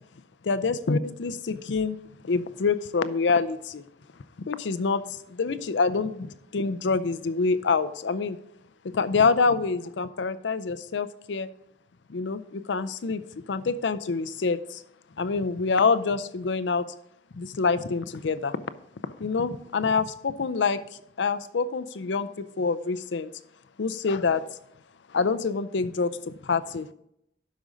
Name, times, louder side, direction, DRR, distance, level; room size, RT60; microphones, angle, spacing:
voice 1, 0.4-2.0 2.2-3.8 4.5-8.4 8.8-11.5 12.1-14.8 15.2-16.9 17.4-18.6 19.2-20.8 21.2-23.3 23.8-24.4 25.1-26.9, left 4 dB, 75° left, 13 dB, 0.5 m, -26 dB
12.0 x 5.1 x 3.9 m, 0.76 s
head